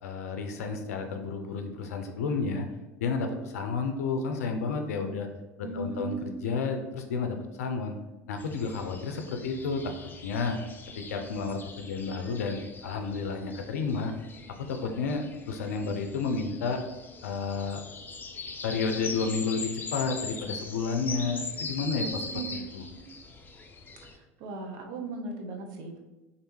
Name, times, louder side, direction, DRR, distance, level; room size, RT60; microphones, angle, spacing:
voice 1, 0.0-2.7 3.0-5.3 5.7-8.0 8.3-9.9 10.2-10.6 11.0-14.1 14.7-16.8 17.2-17.8 18.6-22.8, left 4 dB, 80° left, 6 dB, 0.4 m, -31 dB
voice 2, 5.6-6.4 22.3-22.5 23.0-23.1 24.1-26.0, right 3 dB, 55° right, 2 dB, 0.7 m, -37 dB
sound 1, 8.4-24.2, left 4 dB, 25° left, 0.4 m, -41 dB
3.2 x 2.4 x 3.1 m, 1.1 s
hypercardioid pair, 85°, 8 cm